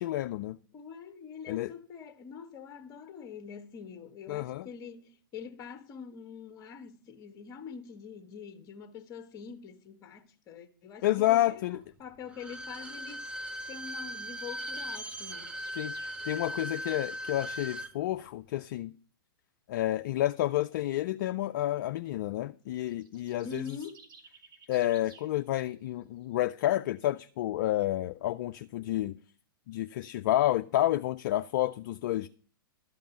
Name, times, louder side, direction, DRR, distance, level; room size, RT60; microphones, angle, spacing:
voice 1, 0.0-0.6 1.5-1.7 4.3-4.7 11.0-11.8 15.7-18.9 19.7-23.6 24.7-29.2 29.7-32.3, left 14 dB, 50° left, 0.4 m, -30 dB
voice 2, 0.7-13.3 13.7-15.6 23.4-24.1, left 6 dB, 30° left, 1.3 m, -45 dB
Bowed string instrument, 12.3-17.9 18.2-18.3, equal, 10° right, 0.7 m, -39 dB
sound 1, 14.0-16.2 22.8-25.3, right 4 dB, 70° right, 1.8 m, -55 dB
12.5 x 5.3 x 5.6 m
hypercardioid pair, 115°, 12 cm